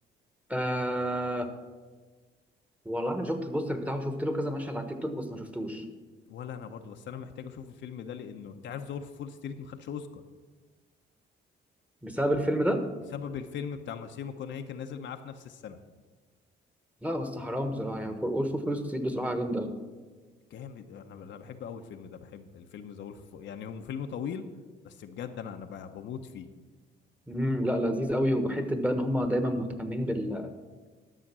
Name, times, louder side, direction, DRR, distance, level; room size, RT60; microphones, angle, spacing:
voice 1, 0.5-1.5 2.8-5.9 12.0-12.8 17.0-19.8 27.3-30.5, equal, 5° right, 7 dB, 1.2 m, -29 dB
voice 2, 6.3-10.2 13.1-15.8 20.5-24.4 24.8-26.5, left 7 dB, 70° left, 6 dB, 0.8 m, -40 dB
11.5 x 6.6 x 6.1 m, 1.4 s
cardioid pair, 90°, 20 cm